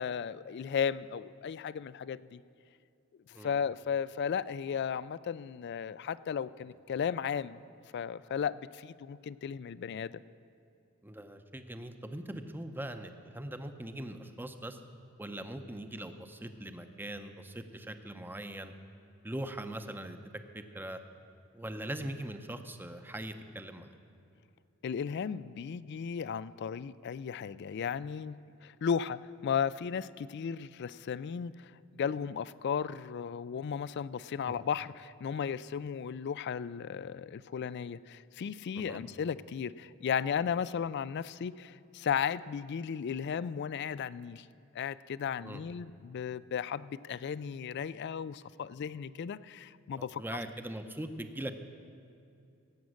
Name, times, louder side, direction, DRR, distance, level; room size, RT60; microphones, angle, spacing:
voice 1, 0.0-2.4 3.3-7.6 7.9-10.2 24.8-31.7 32.0-44.5 44.7-50.2, left 7 dB, 55° left, 18 dB, 0.3 m, -35 dB
voice 2, 11.0-14.8 15.2-18.7 19.2-20.2 20.5-21.0 21.5-24.0 34.5-34.6 38.7-39.0 45.4-45.6 50.0-51.5, right 1 dB, 10° right, 8 dB, 0.6 m, -41 dB
17.0 x 8.3 x 6.4 m, 2.6 s
head